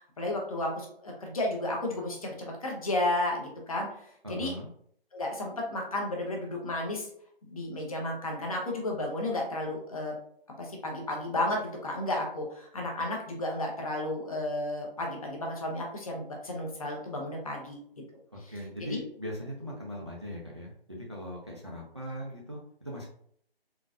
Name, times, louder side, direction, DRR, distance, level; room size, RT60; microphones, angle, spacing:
voice 1, 0.0-3.9 4.3-4.5 5.1-7.1 7.5-10.1 10.6-17.8 18.4-18.5 18.9-19.0, left 1 dB, 35° left, 0 dB, 0.7 m, -32 dB
voice 2, 4.2-4.7 18.5-23.1, equal, 30° right, -2 dB, 0.4 m, -39 dB
3.8 x 2.5 x 2.4 m, 0.64 s
figure-of-eight pair, 155°, 30 cm